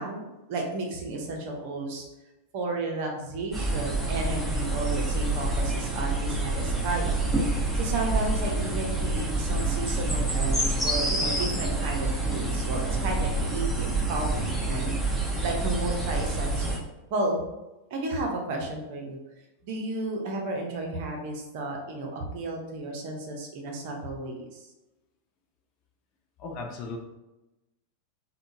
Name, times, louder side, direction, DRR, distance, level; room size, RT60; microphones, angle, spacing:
voice 1, 0.0-2.1 2.5-7.2 7.7-16.8 17.1-17.4 17.9-19.2 19.6-24.6, right 2 dB, 50° right, 1 dB, 0.6 m, -33 dB
sound 1, 3.5-16.8, right 2 dB, 5° left, 1.2 m, -27 dB
voice 2, 26.4-27.0, left 3 dB, 40° left, 2 dB, 0.5 m, -36 dB
3.6 x 2.1 x 2.6 m, 1.0 s
figure-of-eight pair, 90°, 0 cm